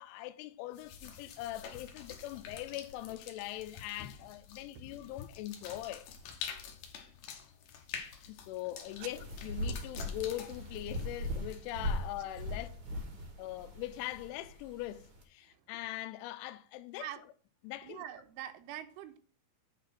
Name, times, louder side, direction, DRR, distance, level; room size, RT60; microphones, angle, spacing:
voice 1, 0.0-6.1 8.3-12.8 13.4-17.1 17.6-18.0, left 15 dB, 85° left, 3.0 m, -42 dB
sound 1, 0.7-11.9, left 7 dB, 70° left, 2.5 m, -48 dB
sound 2, 8.8-15.2, left 1 dB, 60° right, 1.3 m, -40 dB
voice 2, 17.8-19.2, right 11 dB, 85° right, 3.3 m, -44 dB
9.0 x 4.1 x 6.3 m
omnidirectional pair, 5.5 m